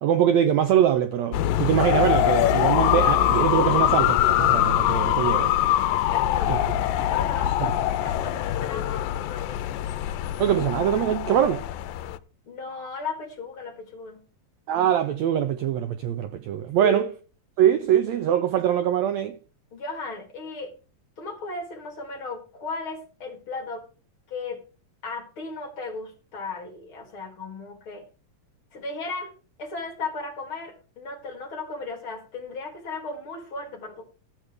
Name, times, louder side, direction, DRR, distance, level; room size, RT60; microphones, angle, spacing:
voice 1, 0.0-5.5 6.5-6.6 7.6-7.7 10.4-11.6 14.7-17.1 17.6-19.4, right 10 dB, 85° right, 1.6 m, -23 dB
sound 1, 1.3-12.2, left 12 dB, 80° left, 2.4 m, -23 dB
voice 2, 6.1-9.9 12.5-14.2 16.8-17.1 19.7-20.7 21.2-23.9 24.3-24.6 25.0-28.0 28.7-29.3 29.6-34.0, left 3 dB, 45° left, 2.4 m, -36 dB
13.5 x 8.1 x 5.0 m
omnidirectional pair, 4.0 m